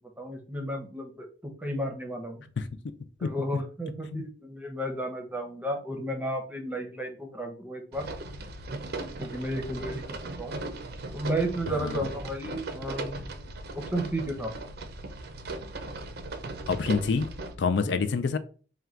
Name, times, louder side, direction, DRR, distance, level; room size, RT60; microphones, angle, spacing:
voice 1, 0.2-2.4 3.2-8.1 9.2-10.5 11.1-14.5 17.9-18.0, right 1 dB, 10° right, 3 dB, 0.7 m, -33 dB
sound 1, 7.9-17.6, right 2 dB, 55° right, 0.5 m, -38 dB
voice 2, 11.7-12.0 16.7-17.3 17.6-18.4, left 5 dB, 65° left, 10 dB, 0.4 m, -27 dB
3.7 x 2.2 x 4.3 m, 0.38 s
head